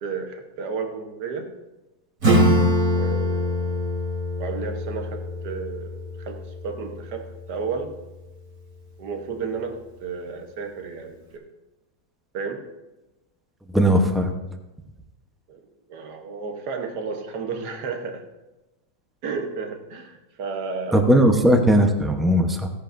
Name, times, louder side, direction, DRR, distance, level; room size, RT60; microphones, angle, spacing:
voice 1, 0.0-1.5 2.9-3.8 4.4-7.9 9.0-11.4 12.3-12.6 15.5-18.2 19.2-21.0, right 5 dB, 75° right, 4 dB, 1.7 m, -32 dB
Acoustic guitar / Strum, 2.2-7.4, left 1 dB, 55° right, 3.2 m, -24 dB
voice 2, 13.7-14.3 20.9-22.7, equal, ahead, 4 dB, 0.3 m, -18 dB
16.5 x 10.5 x 2.6 m, 1.0 s
omnidirectional pair, 1.8 m